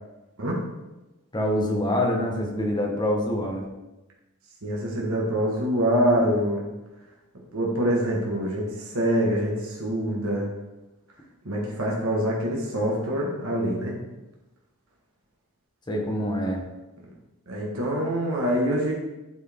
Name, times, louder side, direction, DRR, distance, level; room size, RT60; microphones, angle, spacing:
voice 1, 1.3-3.6 15.9-16.6, left 1 dB, 20° left, 1 dB, 1.1 m, -25 dB
voice 2, 4.6-6.6 7.5-10.5 11.4-14.0 17.5-18.9, equal, 65° right, -2 dB, 1.5 m, -25 dB
11.0 x 4.7 x 3.5 m, 1.0 s
head